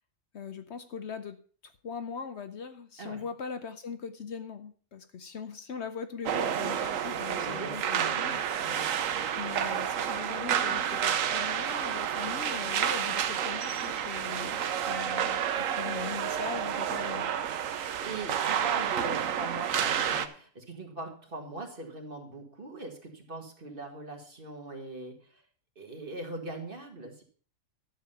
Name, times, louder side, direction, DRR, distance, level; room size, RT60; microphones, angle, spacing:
voice 1, 0.3-1.4 1.6-8.4 9.4-17.3, left 6 dB, 60° left, 10 dB, 1.0 m, -40 dB
sound 1, 6.3-20.3, right 9 dB, 75° right, 1.2 m, -30 dB
voice 2, 7.2-9.0 17.7-25.4 25.8-27.2, right 3 dB, 40° right, 2 dB, 2.1 m, -41 dB
11.5 x 7.2 x 5.6 m, 0.43 s
omnidirectional pair, 1.4 m